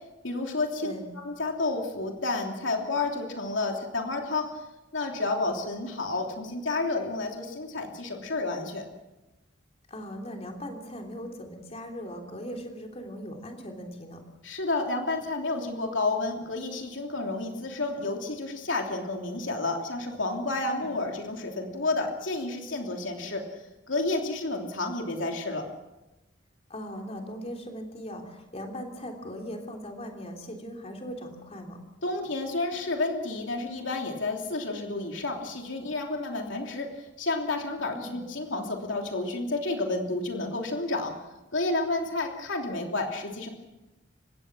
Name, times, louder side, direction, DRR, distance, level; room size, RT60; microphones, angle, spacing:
voice 1, 0.2-4.5 4.9-8.8 14.4-25.6 32.0-41.1 41.5-43.5, left 2 dB, 90° left, 2 dB, 3.1 m, -30 dB
voice 2, 9.9-14.2 20.7-20.9 26.7-31.8 37.9-38.1, equal, 35° left, 2 dB, 3.2 m, -39 dB
30.0 x 16.5 x 6.2 m, 1.0 s
head